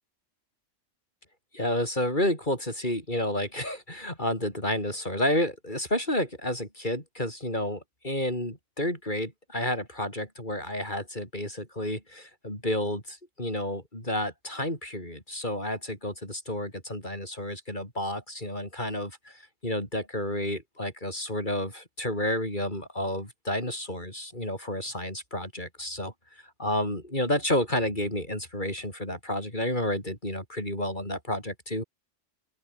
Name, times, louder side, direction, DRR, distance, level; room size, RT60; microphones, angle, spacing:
voice 1, 1.5-26.1 26.6-31.8, left 1 dB, 40° left, 8.2 m, -30 dB
open air
omnidirectional pair, 1.2 m